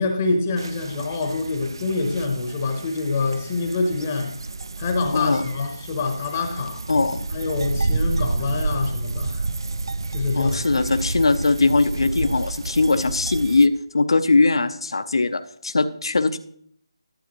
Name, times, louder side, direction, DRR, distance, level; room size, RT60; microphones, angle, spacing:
voice 1, 0.0-4.4 4.8-6.8 7.3-9.5 10.1-10.8, left 3 dB, 20° left, 4 dB, 0.8 m, -26 dB
sound 1, 0.6-13.7, right 3 dB, 55° right, 0.4 m, -30 dB
voice 2, 5.1-5.4 6.9-7.2 10.3-16.4, left 3 dB, 70° left, 10 dB, 0.7 m, -20 dB
11.5 x 9.0 x 3.0 m, 0.63 s
figure-of-eight pair, 175°, 3 cm